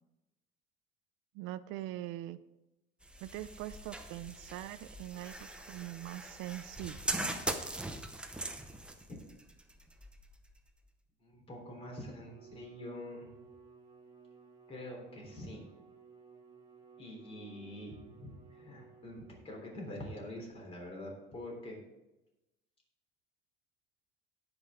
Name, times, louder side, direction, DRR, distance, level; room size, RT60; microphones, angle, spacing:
voice 1, 1.3-2.4 3.2-7.2, right 14 dB, 85° right, 14 dB, 0.6 m, -43 dB
sound 1, 3.0-10.9, right 1 dB, 5° right, 0.7 m, -41 dB
voice 2, 11.2-13.3 14.7-15.6 17.0-21.8, left 1 dB, 30° left, 0 dB, 3.6 m, -45 dB
Bowed string instrument, 11.5-19.8, right 5 dB, 20° right, 1.7 m, -58 dB
18.0 x 6.1 x 3.7 m, 0.97 s
cardioid pair, 160°, 20 cm